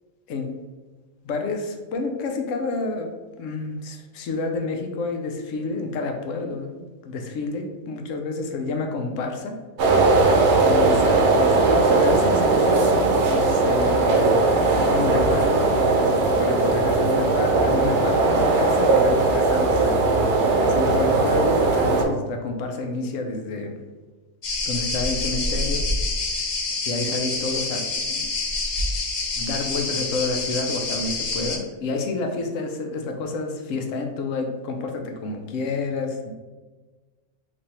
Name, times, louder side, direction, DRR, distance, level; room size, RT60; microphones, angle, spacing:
voice 1, 1.2-3.1 3.4-9.6 10.7-20.2 20.6-23.8 24.7-25.9 26.9-28.3 29.4-36.3, left 3 dB, 90° left, 4 dB, 0.9 m, -29 dB
sound 1, 9.8-22.0, right 3 dB, 70° right, 0.9 m, -19 dB
sound 2, 24.4-31.6, left 3 dB, 50° left, 0.6 m, -27 dB
3.1 x 2.6 x 4.1 m, 1.3 s
omnidirectional pair, 1.3 m